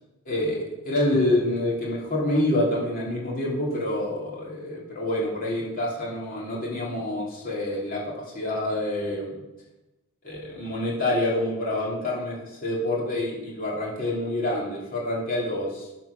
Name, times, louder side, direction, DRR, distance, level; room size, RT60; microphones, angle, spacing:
voice 1, 0.2-9.4 10.2-16.0, left 1 dB, 40° left, -5 dB, 3.0 m, -27 dB
10.5 x 4.6 x 6.6 m, 1.0 s
head